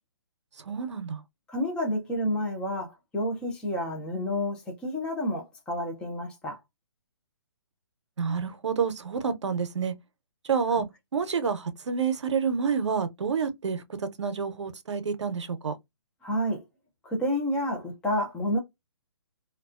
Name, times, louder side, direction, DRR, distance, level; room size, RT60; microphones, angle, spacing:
voice 1, 0.7-1.2 8.2-9.9 10.5-10.9 11.1-13.8 14.2-15.7, right 6 dB, 90° right, 0.6 m, -28 dB
voice 2, 1.5-6.6 10.8-10.9 16.2-16.6 17.0-18.6, equal, 5° left, 0.4 m, -29 dB
2.3 x 2.2 x 2.4 m
hypercardioid pair, 155°, 15 cm